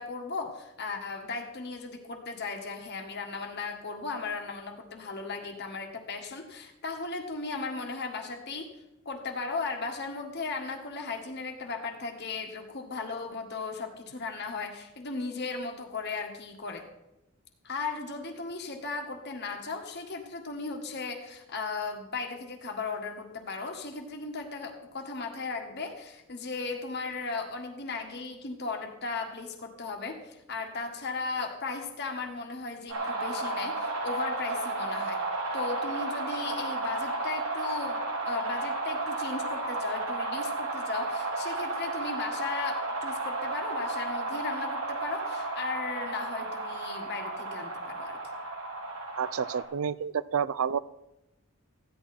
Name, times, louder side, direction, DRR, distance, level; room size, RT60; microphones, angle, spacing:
voice 1, 0.0-8.7 9.0-16.8 17.6-35.2 35.5-48.2, left 4 dB, 50° left, 3 dB, 1.7 m, -36 dB
sound 1, 32.9-49.6, right 2 dB, 90° right, 2.5 m, -33 dB
voice 2, 49.2-50.8, right 7 dB, 75° right, 18 dB, 0.5 m, -29 dB
15.0 x 11.0 x 4.4 m, 0.92 s
head